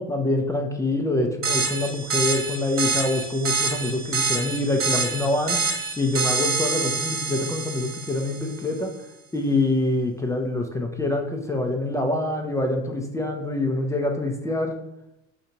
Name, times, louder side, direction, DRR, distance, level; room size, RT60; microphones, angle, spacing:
voice 1, 0.0-5.6 6.0-8.9 9.3-14.7, left 2 dB, 10° left, 2 dB, 0.3 m, -25 dB
sound 1, 1.4-8.6, right 4 dB, 35° right, 0.8 m, -27 dB
2.9 x 2.6 x 4.3 m, 0.85 s
supercardioid pair, 90°, 38 cm